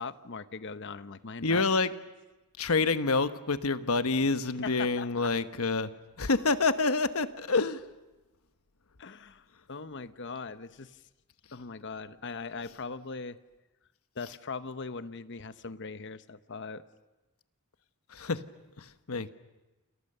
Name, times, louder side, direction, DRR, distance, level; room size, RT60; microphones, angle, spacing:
voice 1, 0.0-1.7 4.6-5.3 9.0-11.0 11.5-13.4 14.2-16.8, left 4 dB, 55° left, 12 dB, 0.9 m, -40 dB
voice 2, 1.4-1.9 2.6-5.9 6.2-7.8 18.1-18.4 18.8-19.3, left 3 dB, 75° left, 11 dB, 1.2 m, -27 dB
29.0 x 28.0 x 6.8 m, 1.1 s
head